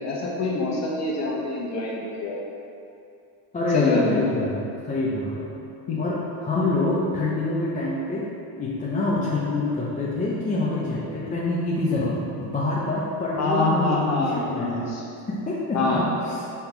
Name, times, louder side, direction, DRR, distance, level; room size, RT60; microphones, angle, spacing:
voice 1, 0.0-2.4 3.7-4.2 5.9-6.0 13.4-15.0 15.7-16.1, left 2 dB, 35° left, -4 dB, 1.1 m, -25 dB
voice 2, 3.5-5.5 6.0-8.3 8.6-14.9 15.3-16.0 16.3-16.5, left 2 dB, 15° left, -6 dB, 0.6 m, -26 dB
5.5 x 4.0 x 4.5 m, 2.6 s
cardioid pair, 140°, 46 cm